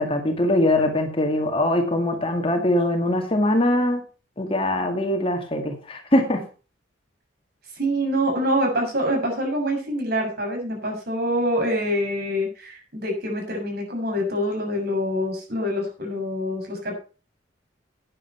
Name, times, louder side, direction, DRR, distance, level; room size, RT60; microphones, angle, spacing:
voice 1, 0.0-4.0 4.4-6.4, left 1 dB, 30° left, 4 dB, 2.1 m, -22 dB
voice 2, 7.7-16.9, equal, 55° right, 1 dB, 6.9 m, -25 dB
10.5 x 10.0 x 5.6 m, 0.35 s
head